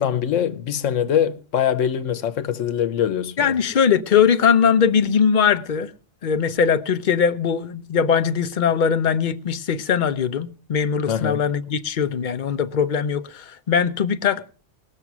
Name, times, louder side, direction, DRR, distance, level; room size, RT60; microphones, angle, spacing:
voice 1, 0.0-3.5 11.1-11.4, left 9 dB, 85° left, 1.2 m, -23 dB
voice 2, 3.4-5.9 6.2-14.5, left 7 dB, 45° left, 0.7 m, -20 dB
19.5 x 6.6 x 6.0 m
omnidirectional pair, 1.3 m